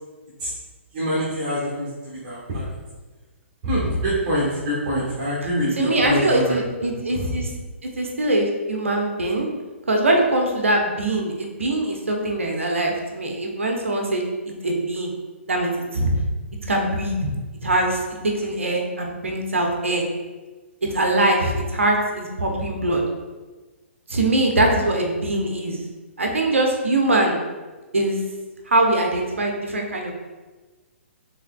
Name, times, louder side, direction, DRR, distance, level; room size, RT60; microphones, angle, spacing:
voice 1, 0.9-2.8 3.6-6.6 7.1-7.4, equal, 35° right, -8 dB, 1.2 m, -25 dB
voice 2, 5.8-7.5 7.8-9.5 9.9-14.3 14.6-15.1 15.5-16.1 16.7-17.2 17.6-20.1 20.9-23.0 24.1-25.8 26.2-27.4 27.9-28.2 28.7-30.1, right 1 dB, 70° right, 1 dB, 0.7 m, -22 dB
5.6 x 3.4 x 2.3 m, 1.3 s
figure-of-eight pair, 125°, 7 cm